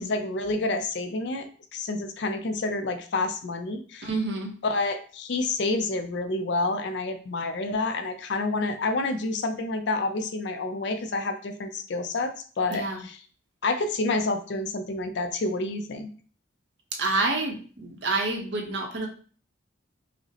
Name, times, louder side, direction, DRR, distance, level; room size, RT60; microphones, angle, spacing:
voice 1, 0.0-4.1 4.6-13.2 13.6-16.1, left 2 dB, 60° left, 7 dB, 0.4 m, -29 dB
voice 2, 4.0-4.5 12.7-13.0 16.9-19.1, right 3 dB, 60° right, 2 dB, 0.7 m, -28 dB
4.9 x 2.0 x 2.8 m, 0.42 s
head